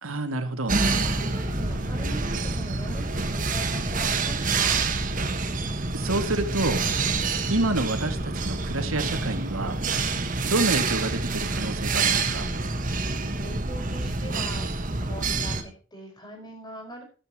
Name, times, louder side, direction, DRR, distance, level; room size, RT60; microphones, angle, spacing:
voice 1, 0.0-0.8 5.9-6.8 7.5-9.8 10.4-12.5, right 2 dB, 85° right, 7 dB, 2.3 m, -28 dB
sound 1, 0.7-15.6, right 3 dB, 40° right, 1.5 m, -27 dB
voice 2, 1.0-4.8 12.8-17.0, equal, 20° left, 2 dB, 5.3 m, -42 dB
13.5 x 12.5 x 3.1 m, 0.36 s
head